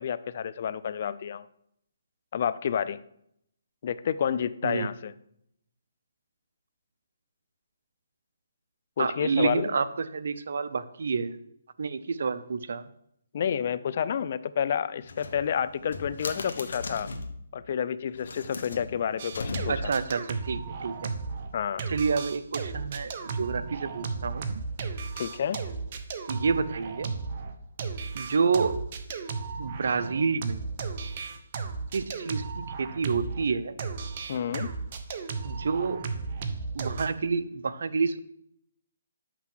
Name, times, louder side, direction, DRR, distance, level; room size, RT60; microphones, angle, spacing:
voice 1, 0.0-1.5 2.3-3.0 3.8-5.1 9.0-9.7 13.3-17.1 17.5-19.9 21.5-21.9 25.2-25.6 34.3-34.7, left 8 dB, 50° left, 15 dB, 0.4 m, -29 dB
voice 2, 9.0-11.4 11.8-12.8 19.7-21.1 21.9-24.6 26.3-27.1 28.1-28.8 29.6-30.6 31.9-33.8 35.4-36.1 36.7-38.2, right 5 dB, 65° right, 12 dB, 0.5 m, -29 dB
sound 1, 15.0-17.4 18.1-20.0, left 3 dB, 75° left, 1.1 m, -38 dB
sound 2, 19.2-21.5 21.8-33.5 33.8-37.1, right 4 dB, 40° right, 0.8 m, -35 dB
6.0 x 5.5 x 6.0 m, 0.73 s
hypercardioid pair, 155°, 0 cm